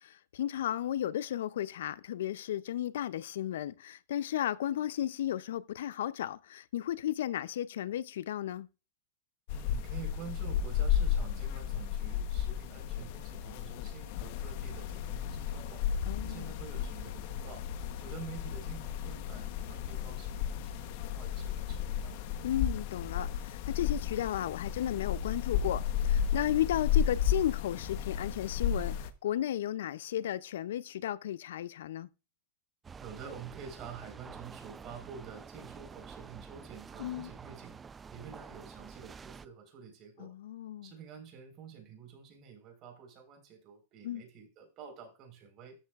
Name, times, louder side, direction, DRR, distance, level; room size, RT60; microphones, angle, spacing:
voice 1, 0.0-8.7 16.1-16.5 22.4-32.1 37.0-37.3 40.2-40.9 44.0-44.2, left 11 dB, 80° left, 0.4 m, -34 dB
sound 1, 9.5-29.1, left 9 dB, 60° left, 0.9 m, -33 dB
voice 2, 9.5-15.8 16.2-17.6 18.0-22.2 33.0-37.8 38.1-40.3 40.8-45.7, right 7 dB, 45° right, 4.1 m, -49 dB
sound 2, 32.8-39.5, right 5 dB, 20° right, 0.4 m, -49 dB
13.5 x 6.6 x 2.4 m
hypercardioid pair, 120°, 0 cm